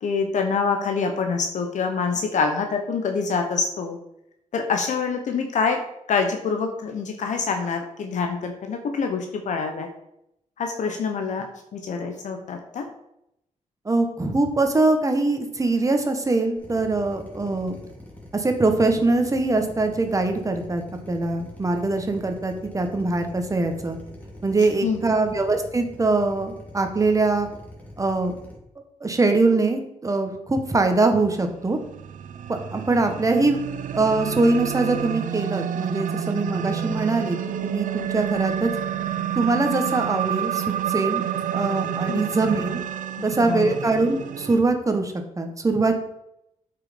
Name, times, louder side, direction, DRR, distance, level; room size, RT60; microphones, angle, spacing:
voice 1, 0.0-4.0 4.5-5.8 6.1-9.9 10.6-11.5 11.7-12.9 24.8-25.0 42.1-42.2 43.2-43.8, left 5 dB, 70° left, 5 dB, 1.0 m, -26 dB
voice 2, 13.8-17.8 18.3-20.8 21.1-24.0 24.4-27.5 28.0-28.3 29.0-31.8 32.5-33.6 33.9-38.7 39.3-41.2 41.5-42.8 43.2-46.0, right 3 dB, 25° right, 5 dB, 1.4 m, -22 dB
Drill, 16.6-28.6, left 1 dB, 10° left, 2.6 m, -43 dB
sound 1, 31.5-44.6, right 9 dB, 80° right, 0.6 m, -29 dB
8.1 x 5.9 x 5.2 m, 0.79 s
cardioid pair, 100°, 13 cm